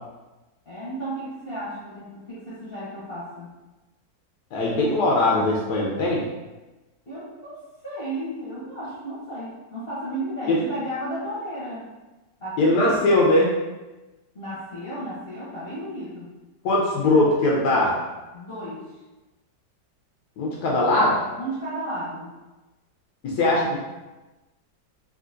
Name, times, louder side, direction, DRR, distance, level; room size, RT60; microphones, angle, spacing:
voice 1, 0.6-3.5 7.0-11.9 12.4-12.9 14.3-16.3 18.3-19.0 21.3-22.3, right 1 dB, 45° left, -11 dB, 0.8 m, -34 dB
voice 2, 4.5-6.2 10.5-10.6 12.6-13.5 16.6-17.9 20.4-21.2 23.2-23.8, left 2 dB, 70° left, -4 dB, 1.0 m, -20 dB
3.7 x 2.4 x 2.5 m, 1.1 s
omnidirectional pair, 2.0 m